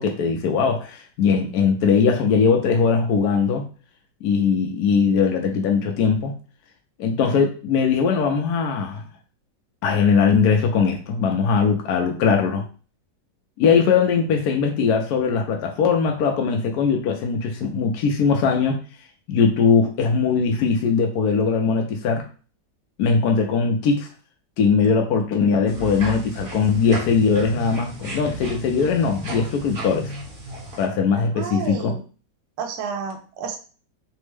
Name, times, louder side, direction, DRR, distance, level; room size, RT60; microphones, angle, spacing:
voice 1, 0.0-3.6 4.2-6.3 7.0-9.0 9.8-12.6 13.6-18.8 19.3-22.2 23.0-24.1 24.6-30.1 30.8-31.9, left 5 dB, 75° left, 2 dB, 0.9 m, -20 dB
sound 1, 25.7-30.8, right 1 dB, 40° right, 1.0 m, -34 dB
voice 2, 31.4-32.0 32.6-33.6, right 6 dB, 80° right, 4 dB, 1.2 m, -30 dB
3.4 x 2.1 x 3.2 m, 0.38 s
omnidirectional pair, 2.0 m